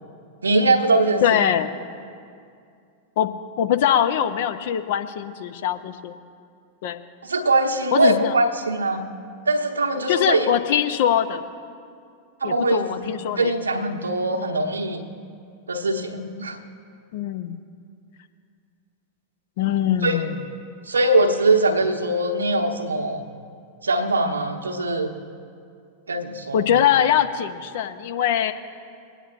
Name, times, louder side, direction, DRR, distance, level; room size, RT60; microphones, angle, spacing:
voice 1, 0.4-1.4 7.2-9.0 9.5-10.5 12.4-13.0 13.4-15.1 15.7-16.6 20.0-20.2 20.9-23.2 23.8-25.1 26.1-26.7, right 2 dB, 75° right, 3 dB, 1.0 m, -22 dB
voice 2, 1.2-1.8 3.2-3.3 3.6-6.2 6.8-7.0 7.9-8.4 10.1-11.4 12.4-13.5 17.1-17.6 19.6-20.4 26.5-28.5, left 10 dB, 55° left, 8 dB, 0.6 m, -22 dB
25.0 x 9.0 x 2.5 m, 2.3 s
figure-of-eight pair, 90°, 0 cm